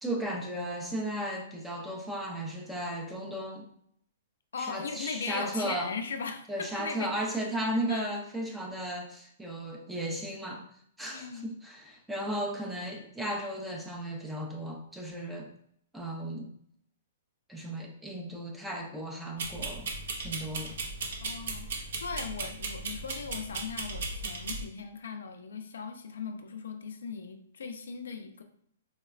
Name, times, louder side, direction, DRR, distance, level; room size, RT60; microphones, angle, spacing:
voice 1, 0.0-3.7 4.6-5.9 6.5-10.7 11.0-15.5 15.9-16.5 17.5-19.9 20.2-20.8, right 1 dB, 5° right, 1 dB, 0.4 m, -35 dB
voice 2, 4.5-7.2 7.9-8.2 11.1-11.5 21.2-28.4, left 5 dB, 90° left, 6 dB, 0.4 m, -38 dB
sound 1, 19.4-24.6, right 3 dB, 65° right, 0.5 m, -36 dB
3.8 x 2.1 x 2.3 m, 0.69 s
hypercardioid pair, 155°, 0 cm